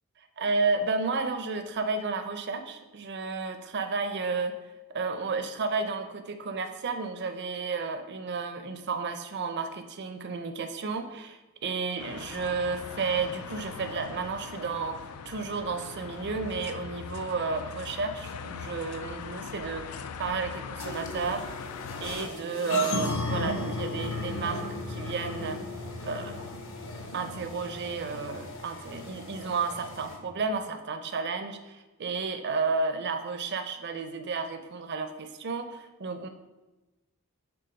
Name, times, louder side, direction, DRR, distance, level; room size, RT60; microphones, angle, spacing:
voice 1, 0.4-4.6 4.9-21.5 22.0-25.6 26.0-26.4 27.1-36.3, right 4 dB, 50° right, 8 dB, 0.5 m, -32 dB
sound 1, 12.0-22.3, left 6 dB, 85° left, 0.4 m, -41 dB
sound 2, 20.8-30.2, left 2 dB, 60° left, 1.0 m, -36 dB
6.9 x 3.4 x 5.2 m, 1.1 s
head